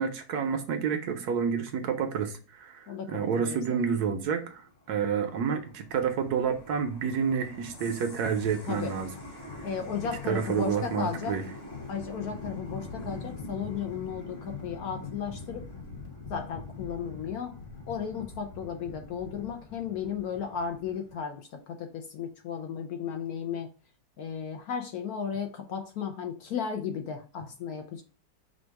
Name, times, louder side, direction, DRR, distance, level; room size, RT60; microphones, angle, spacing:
voice 1, 0.0-9.1 9.6-9.7 10.3-11.4, right 6 dB, 70° right, 7 dB, 1.1 m, -29 dB
voice 2, 2.9-3.8 8.7-8.9 9.6-11.3 11.9-15.6 16.3-17.6 17.9-23.7 24.2-28.0, left 7 dB, 70° left, 4 dB, 0.9 m, -35 dB
sound 1, 4.6-21.2, left 3 dB, 40° left, 1.4 m, -43 dB
5.1 x 2.3 x 4.4 m, 0.37 s
omnidirectional pair, 1.9 m